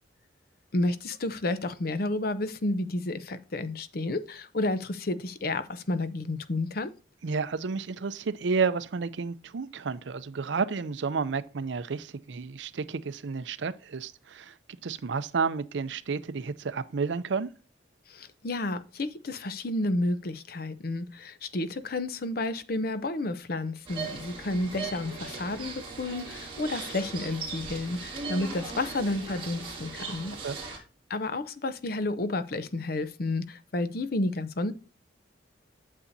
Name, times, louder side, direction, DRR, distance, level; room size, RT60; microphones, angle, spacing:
voice 1, 0.7-6.9 18.1-30.3 31.1-34.7, left 2 dB, 55° left, 0.6 m, -31 dB
voice 2, 7.2-17.5 30.4-30.6, right 5 dB, 75° right, 0.5 m, -31 dB
sound 1, 23.9-30.8, right 4 dB, 30° right, 2.4 m, -38 dB
8.6 x 6.7 x 2.7 m
head